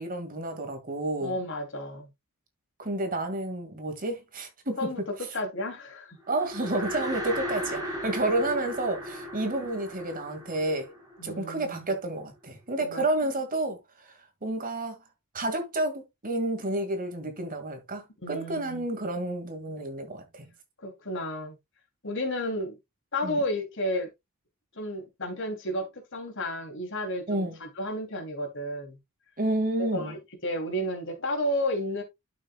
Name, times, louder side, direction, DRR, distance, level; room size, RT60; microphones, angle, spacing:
voice 1, 0.0-1.4 2.8-4.9 6.3-10.9 11.2-13.8 14.4-15.0 15.3-20.5 23.2-23.4 27.3-27.5 29.4-30.1, right 2 dB, 40° right, 2.0 m, -30 dB
voice 2, 1.2-2.1 4.8-6.2 11.2-11.9 12.8-13.3 18.2-18.9 20.8-21.6 22.0-22.8 23.1-24.1 24.7-29.0 29.8-32.0, left 1 dB, 60° left, 2.8 m, -32 dB
sound 1, 6.3-11.7, equal, 20° right, 3.9 m, -36 dB
11.5 x 6.2 x 2.3 m
head